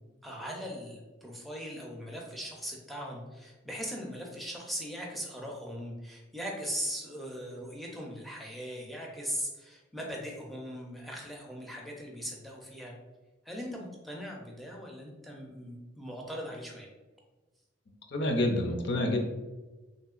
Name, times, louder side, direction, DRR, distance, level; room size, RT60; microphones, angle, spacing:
voice 1, 0.2-12.9 13.4-16.9, equal, ahead, -1 dB, 0.4 m, -39 dB
voice 2, 18.1-19.2, left 1 dB, 55° left, 3 dB, 0.4 m, -28 dB
3.0 x 2.8 x 2.3 m, 1.2 s
head